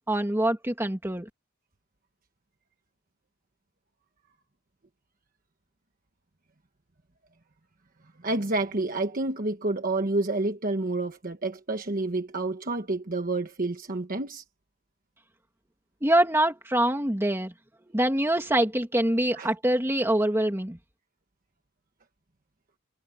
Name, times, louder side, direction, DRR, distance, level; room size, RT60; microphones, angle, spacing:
voice 1, 0.1-1.3 16.0-17.5 17.9-20.8, right 1 dB, 10° right, 2.2 m, -24 dB
voice 2, 8.2-14.4 19.4-19.5, right 2 dB, 40° right, 1.2 m, -29 dB
head